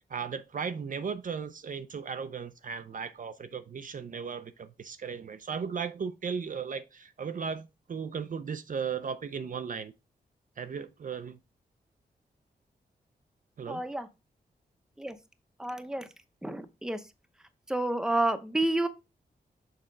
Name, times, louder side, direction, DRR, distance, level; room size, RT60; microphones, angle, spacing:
voice 1, 0.1-9.9 10.6-11.4 13.6-13.8, right 6 dB, 50° right, 0.5 m, -36 dB
voice 2, 13.7-14.1 15.0-15.2 15.6-16.1 16.4-17.0 17.7-18.9, right 2 dB, 5° right, 0.7 m, -29 dB
6.5 x 4.3 x 3.8 m
wide cardioid pair, 90°, 17 cm